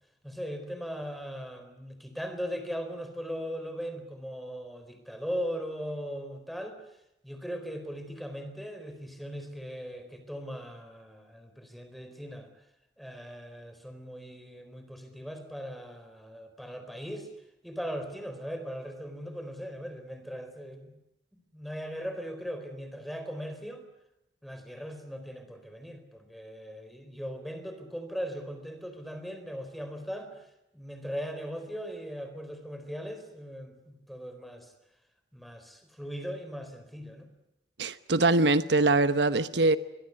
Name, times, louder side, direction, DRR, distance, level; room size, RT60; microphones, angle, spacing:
voice 1, 0.2-6.8 7.2-12.5 13.0-17.3 17.6-21.0 21.3-23.8 24.4-30.4 30.7-34.7 35.3-37.3, equal, ahead, 4.1 m, -39 dB
voice 2, 37.8-39.8, right 2 dB, 80° right, 1.1 m, -23 dB
24.5 x 21.5 x 9.6 m
head